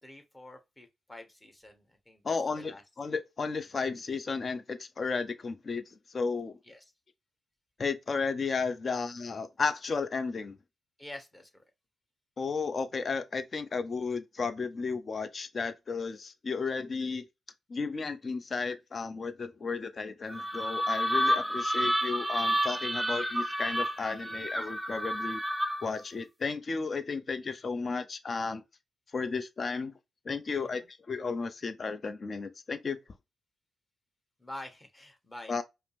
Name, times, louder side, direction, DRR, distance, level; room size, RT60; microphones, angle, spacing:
voice 1, 0.0-2.8 6.6-6.8 11.0-11.6 30.8-30.9 34.4-35.6, left 1 dB, 20° left, 1.5 m, -47 dB
voice 2, 2.2-5.8 6.1-6.6 7.8-10.6 12.4-17.2 17.7-25.4 25.8-28.6 29.1-29.9 30.3-30.8 31.1-33.0 35.5-35.6, left 4 dB, 45° left, 0.6 m, -33 dB
sound 1, 20.3-26.0, equal, 5° right, 0.6 m, -30 dB
5.0 x 2.0 x 3.4 m
supercardioid pair, 60°, 0 cm